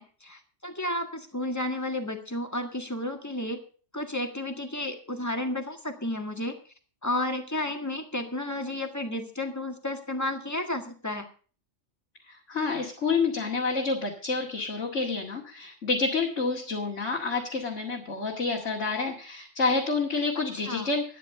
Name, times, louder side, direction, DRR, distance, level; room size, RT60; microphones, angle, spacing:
voice 1, 0.0-3.6 3.9-6.6 7.0-11.3 20.3-20.9, left 1 dB, 15° left, 5 dB, 1.8 m, -32 dB
voice 2, 12.3-21.0, left 4 dB, 75° left, -2 dB, 2.5 m, -28 dB
12.5 x 10.0 x 5.5 m, 0.41 s
omnidirectional pair, 1.2 m